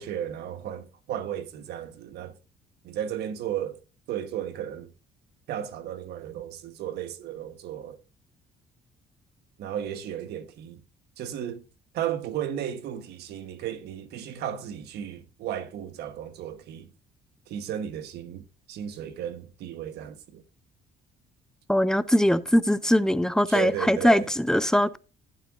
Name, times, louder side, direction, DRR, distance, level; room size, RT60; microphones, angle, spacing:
voice 1, 0.0-2.3 2.8-3.8 4.1-4.9 5.5-8.0 9.6-10.8 11.2-11.6 11.9-16.9 17.5-20.4 23.5-24.3, right 10 dB, 75° right, 1.2 m, -34 dB
voice 2, 21.7-25.0, equal, 5° left, 0.4 m, -21 dB
11.5 x 9.0 x 2.5 m
cardioid pair, 110°, 17 cm